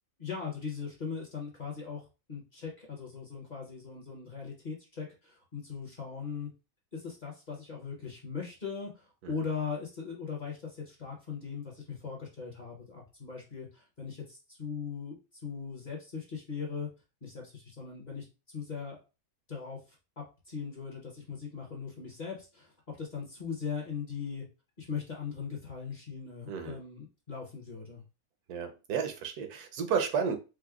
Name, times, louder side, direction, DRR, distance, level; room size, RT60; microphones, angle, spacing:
voice 1, 0.2-6.5 6.9-16.9 17.2-19.0 19.5-19.8 20.2-24.5 24.8-28.0, left 6 dB, 35° left, -1 dB, 0.8 m, -39 dB
voice 2, 26.5-26.8 28.5-30.4, right 6 dB, 90° right, 6 dB, 1.2 m, -32 dB
4.7 x 2.1 x 2.3 m, 0.30 s
omnidirectional pair, 1.6 m